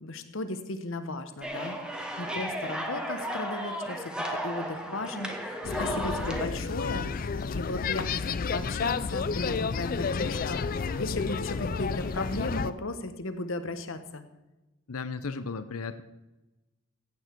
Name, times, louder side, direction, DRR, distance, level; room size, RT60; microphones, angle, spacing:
voice 1, 0.0-7.1 7.5-14.2, left 2 dB, 60° left, 9 dB, 1.1 m, -36 dB
sound 1, 1.4-6.5, equal, 5° right, 1.1 m, -34 dB
sound 2, 5.6-12.7, left 5 dB, 40° left, 0.3 m, -31 dB
sound 3, 6.8-12.7, right 1 dB, 25° right, 2.5 m, -49 dB
voice 2, 14.9-16.0, left 4 dB, 80° left, 12 dB, 0.7 m, -35 dB
15.0 x 9.0 x 4.6 m, 1.1 s
head